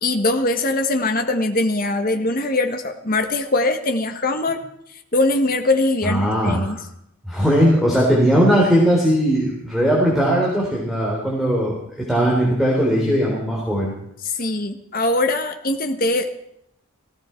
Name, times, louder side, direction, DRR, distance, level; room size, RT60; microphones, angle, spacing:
voice 1, 0.0-4.6 5.1-6.8 14.2-16.3, left 2 dB, 40° left, 6 dB, 1.4 m, -21 dB
voice 2, 6.0-6.7 7.3-13.9, equal, ahead, -4 dB, 3.7 m, -19 dB
17.5 x 16.5 x 4.5 m, 0.73 s
head